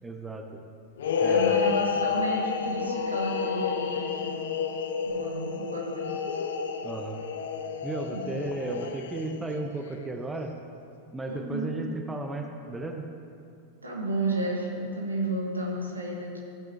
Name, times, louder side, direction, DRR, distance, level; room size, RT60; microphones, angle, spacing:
voice 1, 0.0-0.6 1.2-1.7 6.8-7.2 7.8-10.5 11.1-13.1, right 2 dB, 10° right, 3 dB, 0.8 m, -34 dB
sound 1, 1.0-9.6, left 6 dB, 60° left, 0.6 m, -30 dB
voice 2, 1.3-4.6 5.0-6.1 8.1-8.3 11.3-11.7 13.8-16.4, right 1 dB, 80° right, -2 dB, 1.9 m, -32 dB
15.0 x 8.8 x 3.1 m, 2.5 s
figure-of-eight pair, 90°, 0 cm